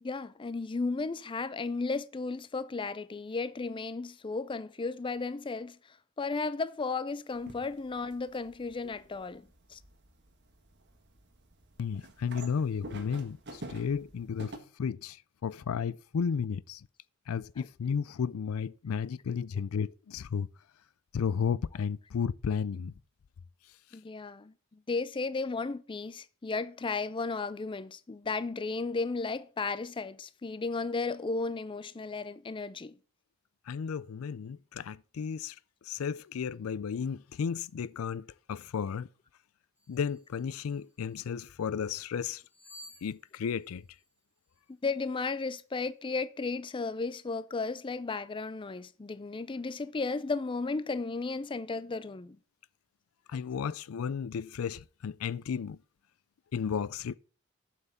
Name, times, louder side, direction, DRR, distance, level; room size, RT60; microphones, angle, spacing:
voice 1, 0.0-9.8 17.6-17.7 23.9-24.5 24.9-33.0 44.8-52.4, left 3 dB, 25° left, 0.4 m, -34 dB
sound 1, 7.3-14.6, right 2 dB, 55° right, 1.5 m, -49 dB
voice 2, 11.8-14.5 14.8-15.2 15.4-16.8 17.3-20.5 21.1-22.9 33.7-35.5 35.9-39.1 39.9-42.4 43.0-43.8 53.3-55.8 56.5-57.2, left 6 dB, 85° left, 0.4 m, -33 dB
sound 2, 39.8-41.3 42.4-44.6 45.0-45.2, left 1 dB, 40° left, 3.5 m, -55 dB
7.8 x 5.8 x 7.1 m
head